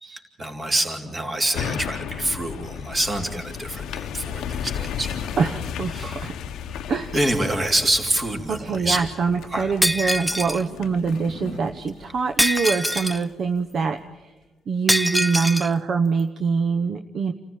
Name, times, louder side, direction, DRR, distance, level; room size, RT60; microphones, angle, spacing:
voice 1, 0.0-5.4 5.9-6.3 6.7-6.8 7.1-9.0 9.5-9.7, right 1 dB, 30° right, 3 dB, 3.4 m, -26 dB
sound 1, 1.5-13.0 13.5-13.6, left 8 dB, 80° left, 0.8 m, -34 dB
voice 2, 5.4-6.3 6.9-7.1 8.5-14.3 14.7-17.3, right 5 dB, 55° right, 7 dB, 0.9 m, -24 dB
sound 2, 6.2-11.7, right 1 dB, 85° right, 4.8 m, -44 dB
Shatter, 9.8-10.6 12.4-13.2 14.9-15.7, equal, ahead, 0.6 m, -23 dB
28.0 x 14.5 x 9.1 m, 1.2 s
cardioid pair, 90°, 0 cm